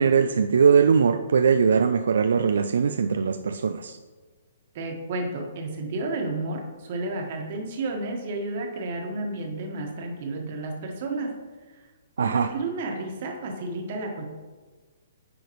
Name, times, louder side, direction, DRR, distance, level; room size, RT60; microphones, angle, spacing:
voice 1, 0.0-4.0 12.2-12.5, right 6 dB, 80° right, 8 dB, 0.3 m, -21 dB
voice 2, 4.7-11.3 12.2-14.2, right 2 dB, 45° right, 2 dB, 1.4 m, -31 dB
9.2 x 4.9 x 3.1 m, 1.4 s
hypercardioid pair, 155°, 0 cm